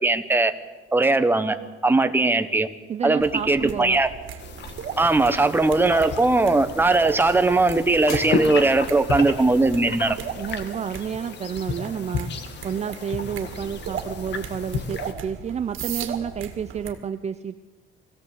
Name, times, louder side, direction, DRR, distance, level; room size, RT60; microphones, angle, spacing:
voice 1, 0.0-0.5 0.9-1.6 1.8-2.7 3.0-4.1 5.0-10.2, right 2 dB, 10° right, 8 dB, 1.1 m, -19 dB
voice 2, 2.9-4.0 10.4-12.3 12.6-17.6, right 7 dB, 30° right, 10 dB, 0.6 m, -30 dB
sound 1, 3.2-3.5 3.8-4.1 4.3-4.4 5.0-5.2 5.6-5.9 6.4-7.5 8.0-9.0, left 3 dB, 85° left, 6.4 m, -43 dB
sound 2, 3.2-16.9, right 7 dB, 70° right, 2.2 m, -37 dB
sound 3, 4.4-15.1, left 6 dB, 55° left, 1.8 m, -33 dB
21.5 x 16.0 x 8.4 m, 1.3 s
cardioid pair, 150°, 21 cm